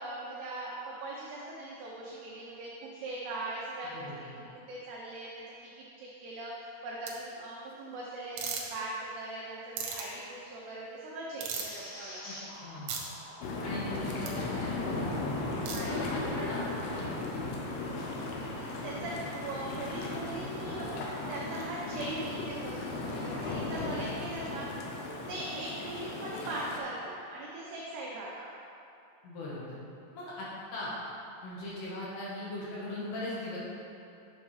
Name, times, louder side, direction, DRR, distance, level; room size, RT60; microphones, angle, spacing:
voice 1, 0.0-5.4 5.8-12.2 15.6-16.0 16.3-16.5 18.6-24.7 25.3-28.5, right 2 dB, 90° right, -4 dB, 2.3 m, -40 dB
voice 2, 3.9-4.3 12.3-12.4 12.6-12.9 13.6-15.4 15.8-16.2 16.5-16.7 16.9-17.4 23.6-23.9 29.2-29.8 30.1-30.9 31.4-33.6, left 2 dB, 70° left, -7 dB, 2.9 m, -40 dB
sound 1, 7.1-7.2 8.4-8.6 9.8-10.0 11.4-11.8 12.9-13.0 14.3-14.4 15.7-15.8, right 6 dB, 75° right, 2.7 m, -35 dB
sound 2, 11.5-17.1 17.6-18.8, left 1 dB, 55° left, 2.0 m, -49 dB
sound 3, 13.4-26.8, left 2 dB, 90° left, 2.2 m, -36 dB
9.3 x 7.0 x 3.2 m, 2.7 s
omnidirectional pair, 5.8 m